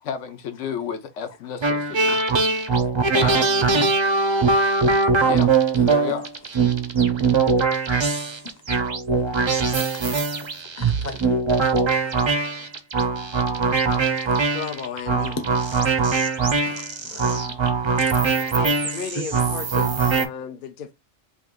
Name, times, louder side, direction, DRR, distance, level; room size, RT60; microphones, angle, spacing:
voice 1, 0.0-2.2 3.1-3.9 5.2-6.3, left 6 dB, 80° left, 1.0 m, -31 dB
sound 1, 1.6-20.3, right 4 dB, 45° right, 0.4 m, -21 dB
voice 2, 10.8-11.3 11.6-11.7 12.0-12.1 12.6-12.7 15.4-15.5 16.0-16.1 16.6-17.6 18.3-18.6, left 3 dB, 20° left, 0.5 m, -37 dB
voice 3, 14.5-15.4 18.6-20.9, left 7 dB, 60° left, 0.6 m, -34 dB
3.5 x 2.6 x 3.7 m
omnidirectional pair, 1.2 m